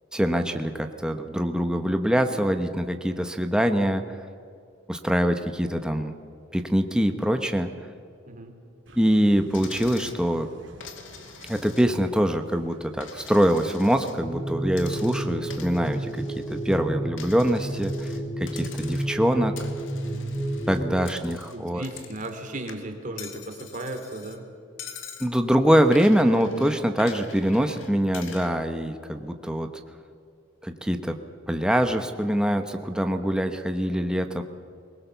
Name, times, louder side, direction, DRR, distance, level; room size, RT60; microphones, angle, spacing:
voice 1, 0.1-4.0 4.9-6.1 6.5-7.7 9.0-10.5 11.5-16.1 16.5-19.6 20.7-21.8 25.2-29.7 30.6-31.2 31.5-34.4, equal, 5° right, 6 dB, 1.0 m, -24 dB
sound 1, 8.9-14.7, right 1 dB, 75° right, 2.7 m, -50 dB
Coin (dropping), 9.5-10.2 10.8-12.1 12.5-14.2 14.7-16.8 17.2-18.2 18.5-19.2 19.6-22.4 22.7-24.4 24.8-25.3 25.9-28.5, left 7 dB, 90° left, 2.1 m, -45 dB
sound 2, 14.2-21.0, right 1 dB, 15° left, 1.7 m, -31 dB
voice 2, 21.5-24.4, right 1 dB, 45° right, 6 dB, 2.9 m, -36 dB
22.5 x 20.0 x 7.0 m, 2.4 s
head